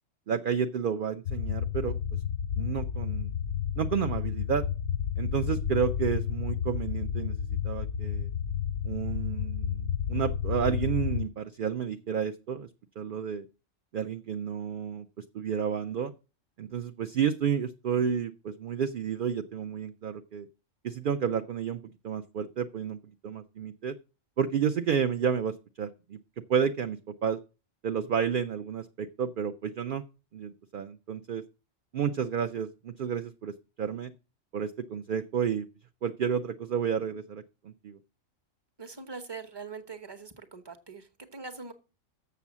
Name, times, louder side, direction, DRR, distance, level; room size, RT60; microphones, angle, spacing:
voice 1, 0.3-2.0 2.6-3.3 3.8-4.6 5.2-7.4 7.6-8.3 8.8-12.7 13.0-13.4 13.9-16.1 16.6-20.5 20.8-23.0 23.2-23.9 24.4-26.2 26.5-27.4 27.8-30.0 30.3-31.4 31.9-33.5 33.8-34.1 34.5-35.7 36.0-38.0, right 7 dB, 55° right, 8 dB, 0.6 m, -31 dB
sound 1, 1.3-11.2, left 8 dB, 55° left, 0.7 m, -31 dB
voice 2, 38.8-41.7, right 4 dB, 20° right, 10 dB, 1.0 m, -42 dB
7.0 x 6.9 x 7.2 m, 0.31 s
omnidirectional pair, 1.4 m